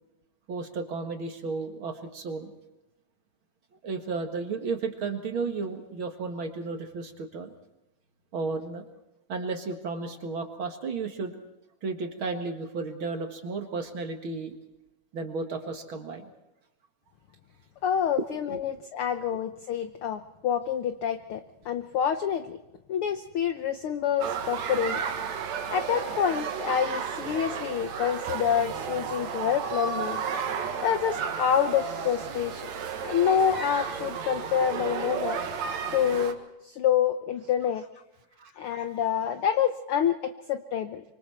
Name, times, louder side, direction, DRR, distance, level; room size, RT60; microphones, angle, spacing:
voice 1, 0.5-2.5 3.8-7.5 8.3-8.8 9.3-11.4 11.8-14.5 15.1-16.3 18.5-18.6 38.4-38.5, right 4 dB, 45° right, 6 dB, 2.2 m, -33 dB
voice 2, 17.8-22.6 22.9-25.0 25.7-30.2 30.8-32.7 33.0-35.4 35.9-37.9 38.6-41.0, left 8 dB, 70° left, 9 dB, 1.3 m, -27 dB
sound 1, 24.2-36.3, right 6 dB, 65° right, 2.8 m, -33 dB
25.5 x 24.5 x 4.5 m, 0.94 s
omnidirectional pair, 3.5 m